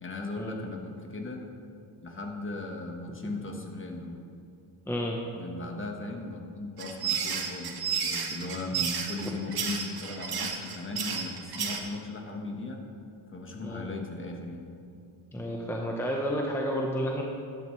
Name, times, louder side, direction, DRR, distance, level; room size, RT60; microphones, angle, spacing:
voice 1, 0.0-1.5 2.0-4.2 5.3-12.8 13.3-14.7, left 2 dB, 25° left, 2 dB, 1.4 m, -37 dB
voice 2, 4.9-5.2 13.6-13.8 15.3-17.2, equal, 5° left, -1 dB, 1.0 m, -31 dB
sound 1, 6.8-11.8, right 7 dB, 50° right, 1.5 m, -32 dB
12.0 x 11.0 x 3.3 m, 2.3 s
cardioid pair, 105°, 48 cm